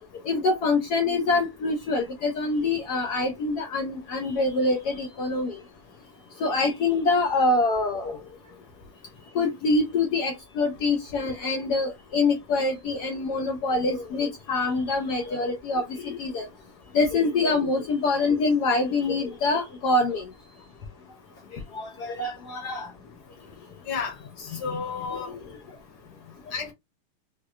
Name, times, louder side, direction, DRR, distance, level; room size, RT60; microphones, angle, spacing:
voice 1, 0.3-5.5 6.4-8.2 9.3-16.5 16.9-20.2 21.7-22.9 24.7-24.8 25.1-25.2, left 3 dB, 80° left, 0.9 m, -25 dB
voice 2, 23.9-25.3 26.5-26.7, left 5 dB, 55° left, 1.5 m, -32 dB
4.5 x 2.1 x 2.4 m
omnidirectional pair, 2.4 m